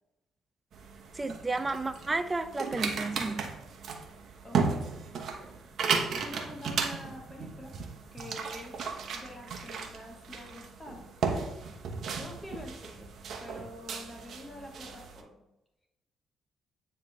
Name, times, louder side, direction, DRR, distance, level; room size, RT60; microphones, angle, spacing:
sound 1, 0.7-15.2, right 5 dB, 65° right, 0.9 m, -35 dB
voice 1, 1.2-3.5, right 3 dB, 20° right, 0.4 m, -32 dB
voice 2, 4.4-4.8 6.1-7.7 8.1-11.1 12.2-13.1 13.4-15.4, left 1 dB, 20° left, 0.9 m, -46 dB
9.5 x 3.2 x 3.2 m
cardioid pair, 90°, 0 cm